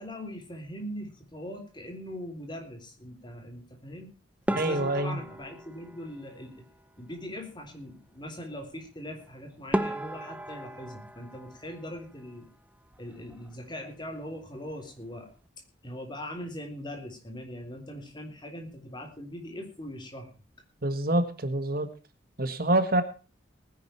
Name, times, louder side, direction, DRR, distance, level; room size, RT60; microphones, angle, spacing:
voice 1, 0.0-4.1 4.5-6.6 7.0-12.5 13.0-15.3 15.8-20.3, equal, 25° left, 4 dB, 3.4 m, -41 dB
sound 1, 4.5-6.9 9.2-9.3 9.7-12.5 12.7-13.5 13.8-14.0 14.3-14.4 15.1-15.4, right 1 dB, 5° right, 0.6 m, -35 dB
voice 2, 4.6-5.2 20.8-21.9 22.4-23.0, right 1 dB, 50° right, 10 dB, 1.5 m, -26 dB
19.5 x 10.5 x 4.3 m, 0.34 s
head